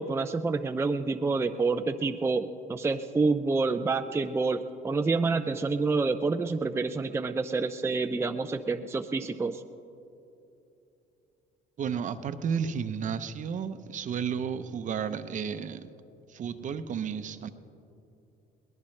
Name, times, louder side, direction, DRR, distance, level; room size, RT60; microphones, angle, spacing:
voice 1, 0.0-9.6, right 3 dB, 15° right, 0.5 m, -28 dB
voice 2, 11.8-15.9 16.3-17.5, right 7 dB, 50° right, 0.8 m, -32 dB
23.0 x 18.5 x 3.3 m
cardioid pair, 110°, 17 cm